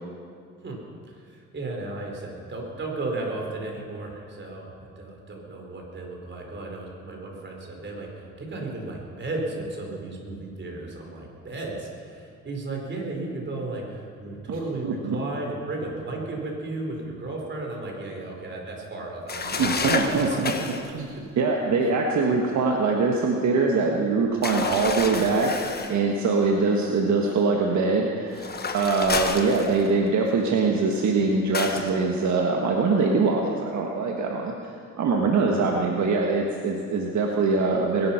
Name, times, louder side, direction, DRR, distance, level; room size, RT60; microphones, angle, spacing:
voice 1, 1.1-20.4 20.9-21.4 21.8-21.9 22.2-22.3 35.5-35.7, right 2 dB, 40° right, 0 dB, 4.3 m, -34 dB
voice 2, 14.8-15.2 19.5-20.5 20.9-38.1, right 4 dB, 65° right, 1 dB, 1.6 m, -23 dB
sound 1, 19.3-20.9 24.4-26.0 28.3-30.1 31.5-31.9, left 4 dB, 30° left, 1.4 m, -30 dB
21.5 x 11.5 x 5.8 m, 2.3 s
cardioid pair, 90°, 30 cm